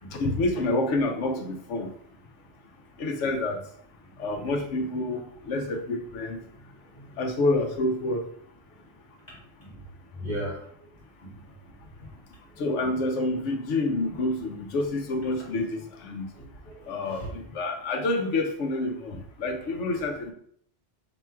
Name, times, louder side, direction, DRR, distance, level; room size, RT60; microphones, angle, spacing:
voice 1, 0.1-1.9 3.0-3.6 4.2-5.2 5.5-6.4 7.2-8.2 12.6-16.3 16.9-20.3, left 2 dB, 80° left, 5 dB, 1.0 m, -28 dB
voice 2, 10.2-10.6 11.2-11.4 12.8-12.9 16.4-16.8 17.1-17.4, right 1 dB, 35° left, -7 dB, 1.8 m, -37 dB
5.1 x 4.5 x 2.3 m, 0.64 s
omnidirectional pair, 1.2 m